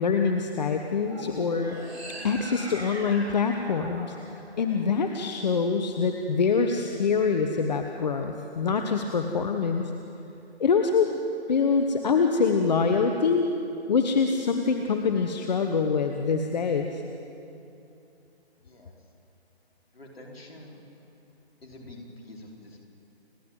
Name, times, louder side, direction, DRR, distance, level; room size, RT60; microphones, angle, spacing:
voice 1, 0.0-1.8 2.2-4.2 4.6-9.9 10.6-11.1 11.5-13.5 13.9-17.0, left 5 dB, 40° left, 5 dB, 1.2 m, -25 dB
sound 1, 1.0-5.4, right 1 dB, 80° right, 5.8 m, -41 dB
voice 2, 18.6-19.0 19.9-20.8 21.6-22.8, left 1 dB, 65° left, 0 dB, 4.8 m, -46 dB
29.5 x 12.0 x 9.2 m, 2.7 s
figure-of-eight pair, 150°, 32 cm